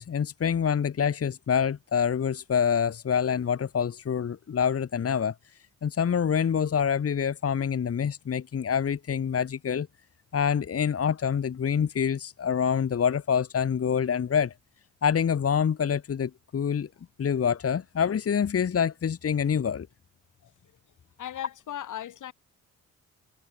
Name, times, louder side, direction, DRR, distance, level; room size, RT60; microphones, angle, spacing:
voice 1, 0.0-9.9 10.3-14.5 15.0-16.9 17.2-19.9, left 7 dB, 50° left, 1.8 m, -26 dB
voice 2, 21.2-22.3, left 11 dB, 80° left, 6.9 m, -37 dB
cardioid pair, 75°, 30 cm